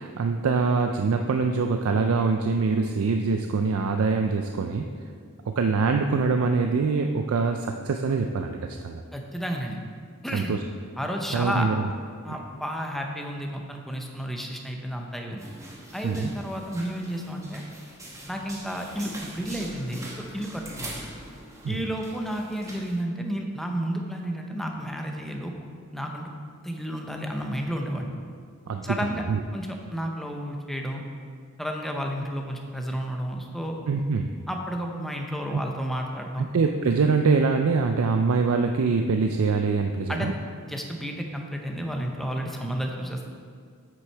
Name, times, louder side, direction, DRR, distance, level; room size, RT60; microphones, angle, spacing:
voice 1, 0.0-4.9 5.5-8.6 8.8-9.0 10.3-10.6 11.3-11.9 16.0-16.3 21.6-21.8 28.7-29.0 29.3-29.4 33.9-34.3 35.5-35.6 36.4-40.3, right 4 dB, 80° right, 5 dB, 0.4 m, -24 dB
voice 2, 9.1-9.8 10.2-10.5 11.0-11.7 12.2-15.4 15.9-17.6 18.3-21.0 21.7-25.5 25.9-26.3 26.6-28.1 28.8-29.2 29.5-31.0 31.6-33.8 34.5-36.5 40.1-40.3 40.6-43.3, equal, ahead, 1 dB, 0.7 m, -31 dB
sound 1, 15.4-23.0, right 1 dB, 15° right, 1.1 m, -42 dB
8.3 x 6.2 x 4.5 m, 2.1 s
head